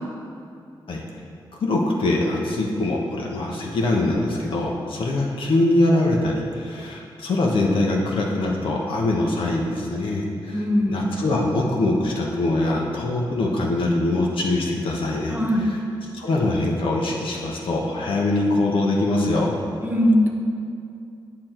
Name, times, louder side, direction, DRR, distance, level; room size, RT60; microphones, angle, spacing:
voice 1, 1.6-19.5, left 2 dB, 80° left, -1 dB, 1.2 m, -23 dB
voice 2, 10.5-11.1 15.3-15.7 19.8-20.3, left 1 dB, 20° right, 0 dB, 1.0 m, -20 dB
8.8 x 6.1 x 4.5 m, 2.5 s
cardioid pair, 80°, 9 cm